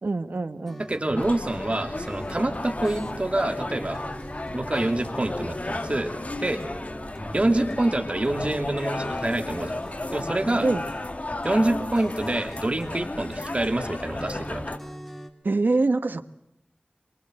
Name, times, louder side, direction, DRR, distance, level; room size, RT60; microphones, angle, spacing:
voice 1, 0.0-0.8 10.6-10.9 15.4-16.2, right 3 dB, 85° right, 11 dB, 1.4 m, -24 dB
sound 1, 0.6-15.3, equal, 5° left, 3.3 m, -43 dB
voice 2, 0.9-4.0 4.5-6.1 6.4-6.6 7.3-9.8 10.1-10.7 11.4-14.7, right 1 dB, 40° right, 7 dB, 2.6 m, -26 dB
sound 2, 1.2-14.8, left 2 dB, 45° left, 2.1 m, -33 dB
27.0 x 24.0 x 7.8 m, 0.81 s
wide cardioid pair, 65°, 3 cm